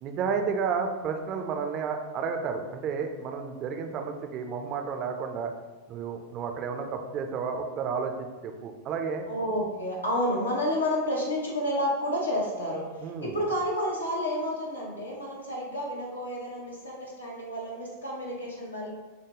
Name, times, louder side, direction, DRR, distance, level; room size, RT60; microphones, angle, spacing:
voice 1, 0.0-5.5 5.9-9.3 13.0-13.4, right 5 dB, 35° right, 5 dB, 0.5 m, -31 dB
voice 2, 9.3-18.9, equal, 80° left, -3 dB, 1.2 m, -30 dB
5.8 x 2.3 x 3.8 m, 1.2 s
figure-of-eight pair, 90°, 0 cm